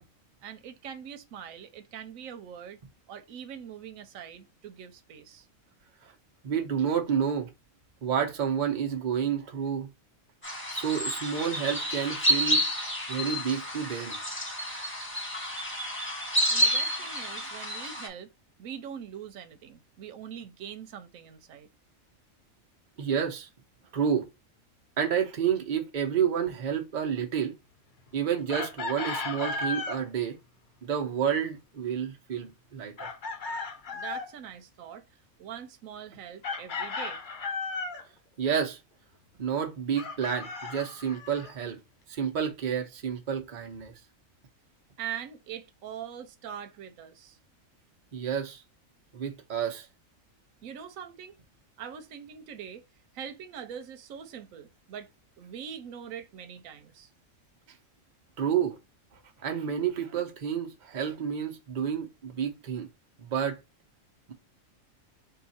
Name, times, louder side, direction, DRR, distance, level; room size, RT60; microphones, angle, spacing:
voice 1, 0.4-2.8 3.1-5.5 16.5-18.3 18.6-21.7 33.9-35.0 35.4-37.2 45.0-47.4 50.6-51.3 51.8-52.9 53.1-55.1 55.4-57.1, right 8 dB, 90° right, 1.1 m, -42 dB
voice 2, 6.4-7.5 8.0-9.9 10.7-12.7 13.1-14.2 23.0-23.5 23.9-24.3 25.0-27.6 28.1-30.4 30.8-33.1 38.4-38.8 39.4-41.8 42.1-43.9 48.1-48.6 49.1-49.9 58.4-58.8 59.4-62.9 63.2-63.6, right 8 dB, 40° right, 0.8 m, -30 dB
sound 1, 10.4-18.1, equal, 10° left, 1.0 m, -29 dB
Chicken rooster, 28.5-30.0 33.0-34.3 36.4-38.0 39.9-41.5, left 3 dB, 45° left, 0.7 m, -35 dB
3.8 x 2.4 x 4.1 m
omnidirectional pair, 1.4 m